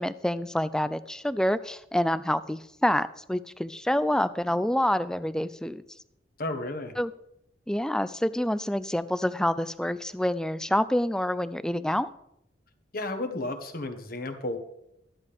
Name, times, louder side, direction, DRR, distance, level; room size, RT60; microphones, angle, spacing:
voice 1, 0.0-5.8 7.0-7.1 7.7-12.1, left 1 dB, 5° left, 14 dB, 0.4 m, -27 dB
voice 2, 6.4-6.9 12.9-14.6, left 2 dB, 50° left, 6 dB, 1.4 m, -32 dB
13.5 x 11.0 x 3.5 m, 0.79 s
head